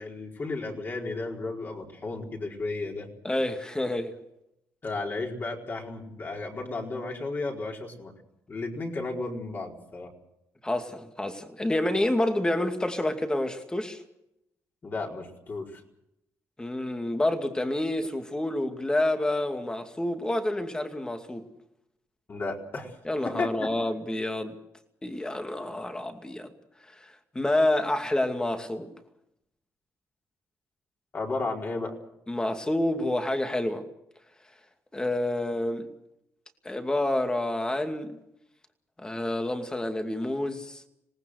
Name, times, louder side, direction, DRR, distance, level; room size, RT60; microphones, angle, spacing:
voice 1, 0.0-3.1 4.8-8.1 8.5-10.1 14.8-15.8 22.3-22.9 23.2-23.7 31.1-32.0, left 3 dB, 35° left, 4.8 m, -33 dB
voice 2, 3.2-4.1 10.6-14.0 16.6-21.5 23.0-24.5 25.0-26.5 27.0-28.9 32.3-33.8 34.9-35.9 36.6-38.2 39.0-40.8, left 1 dB, 15° left, 2.4 m, -28 dB
26.5 x 19.0 x 6.6 m
cardioid pair, 105°, 6 cm